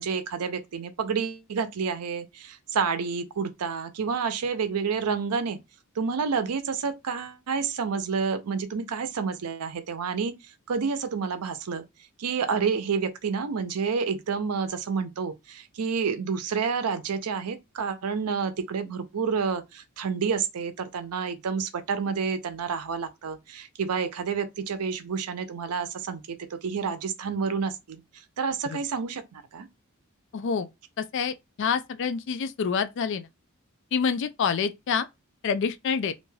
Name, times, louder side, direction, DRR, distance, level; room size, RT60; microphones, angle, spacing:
voice 1, 0.0-5.6 6.0-10.4 10.7-11.8 12.2-26.2 26.5-28.0 28.4-29.7, right 5 dB, 90° right, 0.5 m, -29 dB
voice 2, 30.3-30.7 31.0-33.3 33.9-35.1 35.4-36.1, left 6 dB, 55° left, 0.3 m, -27 dB
2.5 x 2.2 x 3.2 m
head